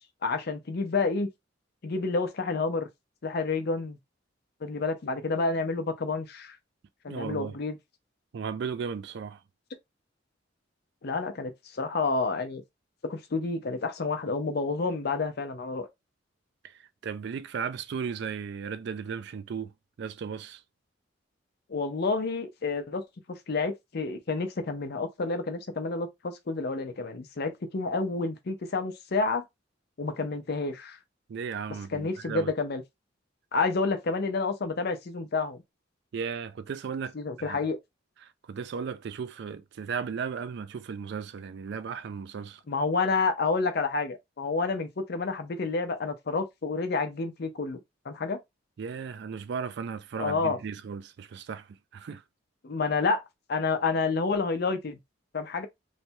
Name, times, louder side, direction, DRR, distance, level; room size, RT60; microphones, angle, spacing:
voice 1, 0.2-1.3 1.8-2.9 3.2-4.0 4.6-6.6 7.0-7.8 11.0-12.6 13.0-15.9 21.7-23.0 23.3-29.4 30.0-31.0 31.9-32.8 33.5-35.6 37.1-37.8 42.7-47.8 48.1-48.4 50.2-50.6 52.6-53.2 53.5-55.0 55.3-55.7, left 4 dB, 55° left, 0.6 m, -29 dB
voice 2, 7.1-7.6 8.3-9.4 16.6-19.7 20.0-20.6 31.3-32.5 36.1-37.6 38.2-42.6 48.8-52.2, right 6 dB, 60° right, 0.3 m, -36 dB
3.2 x 2.2 x 2.7 m
head